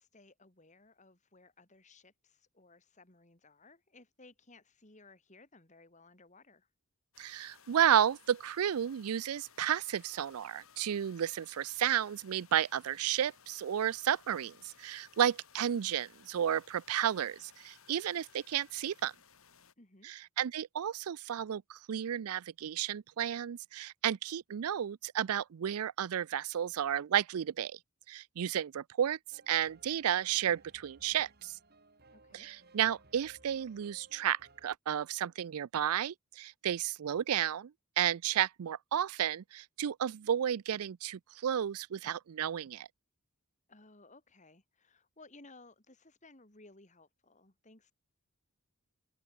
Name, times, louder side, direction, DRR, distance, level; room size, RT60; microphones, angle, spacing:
voice 1, 0.0-6.7 19.8-20.1 32.1-32.5 43.7-47.9, left 2 dB, 35° left, 2.9 m, -59 dB
sound 1, 7.1-19.7, left 7 dB, 75° left, 4.7 m, -61 dB
voice 2, 7.2-19.1 20.0-27.8 28.1-29.2 29.5-31.6 32.3-37.7 38.0-42.9, right 9 dB, 90° right, 0.4 m, -32 dB
sound 2, 29.3-34.7, right 3 dB, 45° right, 3.1 m, -62 dB
open air
head